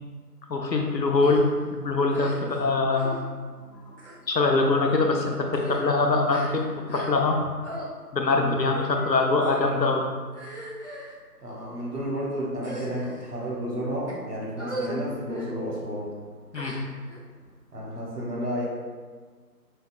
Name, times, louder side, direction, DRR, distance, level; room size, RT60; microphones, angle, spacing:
voice 1, 0.5-1.4 1.7-3.2 3.7-3.8 4.3-7.4 8.1-10.1 16.5-16.8, left 3 dB, 90° left, 2 dB, 0.7 m, -23 dB
sound 1, 1.2-1.4 2.1-2.6 2.9-3.2 3.9-4.2 4.9-5.0 5.4-7.4 7.6-7.9 8.7-9.0 9.4-9.8 10.3-11.1 11.8-12.1 12.6-13.3 13.9-14.1 14.6-15.0 15.3-15.5 16.5-17.2, equal, 50° left, 0.4 m, -38 dB
voice 2, 8.4-8.7 11.4-16.1 17.7-18.6, equal, 70° right, -4 dB, 1.2 m, -32 dB
5.0 x 2.3 x 2.3 m, 1.5 s
figure-of-eight pair, 170°, 49 cm